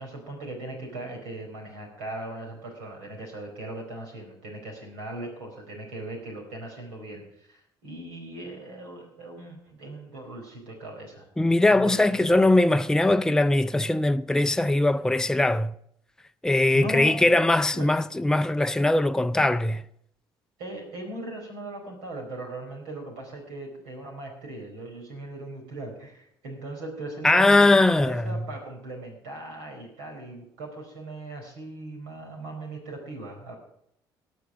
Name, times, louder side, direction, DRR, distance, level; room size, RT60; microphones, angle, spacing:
voice 1, 0.0-11.3 11.7-12.0 12.3-12.5 16.7-17.3 17.7-17.9 20.6-33.5, right 2 dB, 80° right, 4.6 m, -39 dB
voice 2, 11.4-15.7 16.4-19.8 27.2-28.4, left 2 dB, 5° left, 0.5 m, -21 dB
18.0 x 6.3 x 6.3 m
hypercardioid pair, 55°, 12 cm